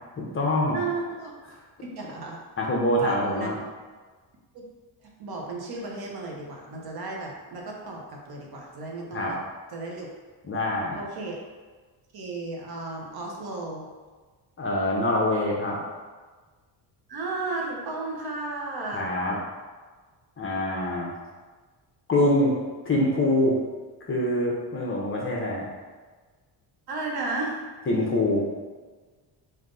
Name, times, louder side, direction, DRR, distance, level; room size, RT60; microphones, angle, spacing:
voice 1, 0.2-0.8 2.6-3.6 9.1-9.3 10.4-11.0 14.6-15.8 18.9-19.3 20.4-21.1 22.1-22.5 22.9-23.6 24.1-25.6 27.9-28.4, left 1 dB, 30° left, -3 dB, 0.7 m, -24 dB
voice 2, 0.7-1.3 1.8-2.4 3.0-3.5 4.5-4.7 5.0-9.4 9.7-10.1 10.9-11.4 12.1-13.9 17.1-19.1 26.9-27.6, right 3 dB, 55° right, -1 dB, 0.9 m, -34 dB
3.6 x 2.7 x 3.8 m, 1.4 s
cardioid pair, 130°, 45 cm